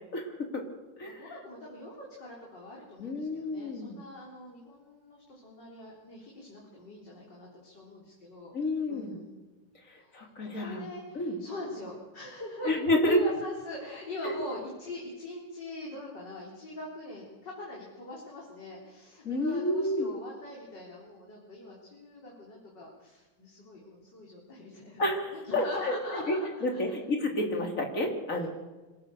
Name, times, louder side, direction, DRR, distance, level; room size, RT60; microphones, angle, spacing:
voice 1, 0.1-0.6 1.0-1.3 3.0-4.0 8.5-9.1 9.9-10.8 11.1-11.4 12.6-13.2 14.2-14.4 19.2-20.1 25.0-26.4 26.6-28.5, left 1 dB, 40° left, 1 dB, 3.5 m, -30 dB
voice 2, 1.0-8.5 8.9-9.4 9.9-25.0 25.4-27.0, left 1 dB, 60° left, -3 dB, 4.5 m, -42 dB
26.0 x 17.0 x 7.0 m, 1.2 s
omnidirectional pair, 2.1 m